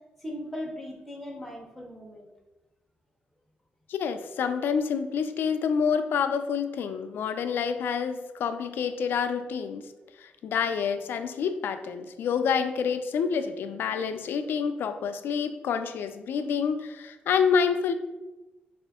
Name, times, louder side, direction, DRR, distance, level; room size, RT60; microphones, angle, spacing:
voice 1, 0.2-2.3, left 1 dB, ahead, -1 dB, 0.7 m, -38 dB
voice 2, 3.9-9.8 10.2-17.9, left 6 dB, 85° left, 9 dB, 0.3 m, -28 dB
4.9 x 2.4 x 3.5 m, 1.1 s
wide cardioid pair, 140°, 4 cm